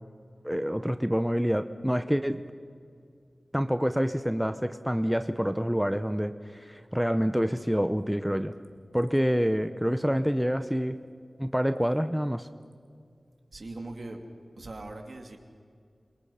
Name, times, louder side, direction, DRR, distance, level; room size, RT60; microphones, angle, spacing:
voice 1, 0.4-2.4 3.5-8.5 8.9-11.0 11.4-12.5, equal, 5° right, 10 dB, 0.7 m, -27 dB
voice 2, 13.5-14.2 14.6-15.4, right 2 dB, 60° right, 4 dB, 2.6 m, -41 dB
27.5 x 23.0 x 5.7 m, 2.2 s
wide cardioid pair, 75°, 0 cm